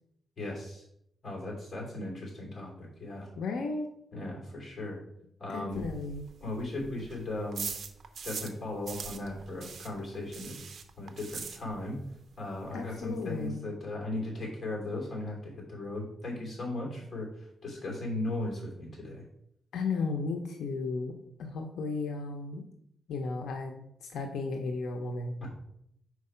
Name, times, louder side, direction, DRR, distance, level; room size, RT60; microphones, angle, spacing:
voice 1, 0.4-0.8 1.2-3.3 4.1-5.0 5.4-5.8 6.4-7.7 8.2-10.6 11.0-12.0 12.4-17.3 17.6-19.2 25.4-25.5, left 2 dB, 35° left, -1 dB, 2.6 m, -37 dB
voice 2, 3.4-3.9 5.5-6.3 12.7-13.6 19.7-22.6 23.1-25.5, left 4 dB, 85° left, 3 dB, 0.7 m, -34 dB
sound 1, 5.7-8.6 8.8-12.1 12.3-12.4 12.7-12.8 13.0-13.5, right 5 dB, 60° right, 0.6 m, -41 dB
4.7 x 4.6 x 5.5 m, 0.75 s
wide cardioid pair, 130°, 0 cm